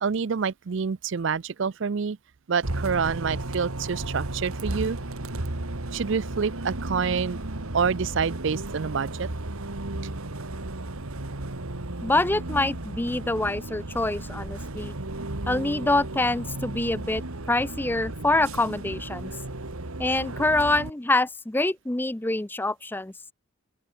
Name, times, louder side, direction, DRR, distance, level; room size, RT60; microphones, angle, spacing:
voice 1, 0.0-2.2 2.5-5.0 5.9-7.4 7.7-9.3, right 6 dB, 55° right, 0.5 m, -27 dB
Bus, 2.6-20.9, right 2 dB, 80° right, 2.0 m, -34 dB
voice 2, 12.0-14.9 15.5-17.2 17.5-19.3 20.0-23.1, left 2 dB, 10° left, 0.4 m, -25 dB
open air
head